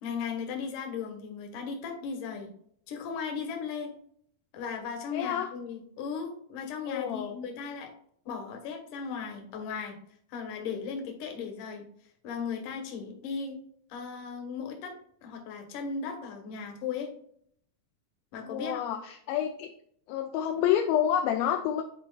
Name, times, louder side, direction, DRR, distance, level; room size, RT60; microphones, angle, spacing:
voice 1, 0.0-2.5 2.9-3.9 4.5-7.9 8.3-9.9 10.3-11.8 12.2-13.6 13.9-14.9 15.2-17.1 18.3-18.8, left 6 dB, 65° left, 3 dB, 2.4 m, -36 dB
voice 2, 5.1-5.5 6.9-7.4 18.4-19.7 20.1-21.8, left 10 dB, 80° left, 3 dB, 2.3 m, -28 dB
9.8 x 4.4 x 2.3 m, 0.66 s
omnidirectional pair, 4.4 m